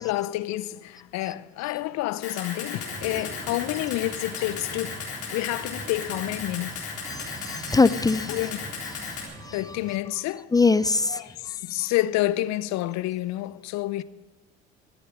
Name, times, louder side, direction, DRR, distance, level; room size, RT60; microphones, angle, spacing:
voice 1, 0.0-6.9 8.3-8.7 9.5-10.5 11.1-14.0, left 16 dB, 55° left, 0.7 m, -29 dB
Camera, 2.2-9.2, left 5 dB, 85° left, 3.9 m, -36 dB
sound 1, 2.7-10.0, right 2 dB, 25° right, 2.1 m, -42 dB
voice 2, 7.1-8.4 9.2-9.6 10.5-11.9, left 4 dB, 10° left, 0.4 m, -23 dB
22.5 x 8.6 x 5.0 m
hypercardioid pair, 60°, 32 cm